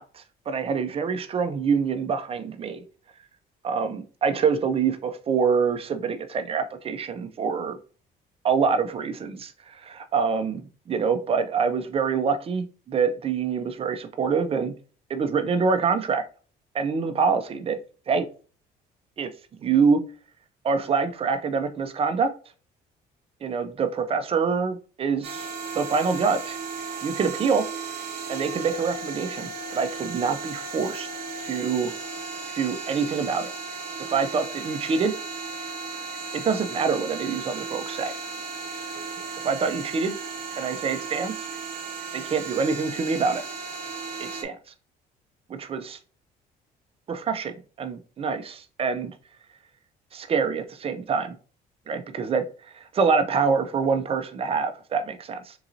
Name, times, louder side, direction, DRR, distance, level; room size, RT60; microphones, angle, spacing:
voice 1, 0.0-2.8 3.6-7.8 8.4-14.7 15.1-16.2 16.7-17.8 18.1-18.3 19.2-19.3 19.6-20.0 20.6-22.3 23.4-25.5 25.7-26.6 27.0-27.6 28.3-31.1 31.4-31.9 32.5-33.5 34.1-35.1 36.3-38.1 39.4-40.1 40.6-41.5 42.1-43.4 44.2-44.6 45.6-46.0 47.1-49.1 50.1-51.4 51.9-52.4 52.7-55.5, right 5 dB, 35° right, 8 dB, 0.6 m, -25 dB
sound 1, 25.2-44.4, right 4 dB, 70° right, 0.8 m, -35 dB
3.8 x 2.9 x 2.5 m, 0.38 s
cardioid pair, 110°, 17 cm